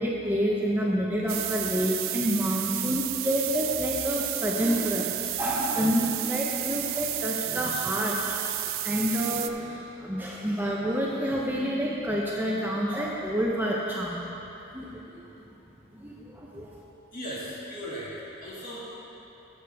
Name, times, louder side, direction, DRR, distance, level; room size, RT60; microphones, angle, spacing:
voice 1, 0.0-14.3 14.7-15.3 15.9-16.8, equal, 10° right, -4 dB, 0.6 m, -28 dB
sound 1, 1.3-9.5, right 15 dB, 75° right, 0.4 m, -32 dB
voice 2, 17.1-19.0, equal, 45° left, -7 dB, 2.0 m, -37 dB
14.0 x 6.5 x 3.4 m, 3.0 s
head